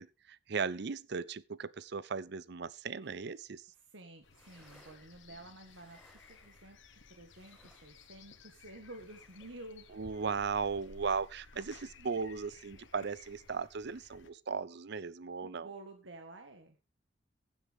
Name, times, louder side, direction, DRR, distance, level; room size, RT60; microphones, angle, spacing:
voice 1, 0.0-3.6 10.0-15.7, right 5 dB, 65° right, 0.6 m, -37 dB
sound 1, 3.0-3.4 3.7-3.8 4.1-9.9 10.4-10.7, equal, 5° right, 6.0 m, -66 dB
voice 2, 3.8-9.8 15.4-16.8, right 2 dB, 80° right, 1.6 m, -51 dB
sound 2, 4.2-14.3, left 4 dB, 85° left, 1.2 m, -57 dB
15.5 x 8.0 x 3.5 m
head